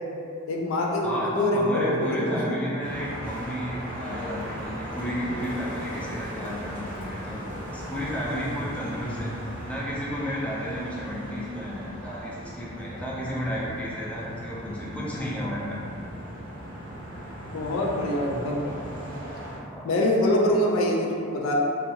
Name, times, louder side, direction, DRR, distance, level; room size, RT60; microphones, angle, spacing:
voice 1, 0.5-2.6 17.4-18.9 19.8-21.5, left 1 dB, 70° left, -2 dB, 0.4 m, -25 dB
voice 2, 1.0-7.4 7.7-15.8 19.7-19.9, equal, 5° left, -7 dB, 0.4 m, -32 dB
sound 1, 2.8-19.6, equal, 40° right, 0.6 m, -37 dB
2.7 x 2.3 x 2.7 m, 2.6 s
head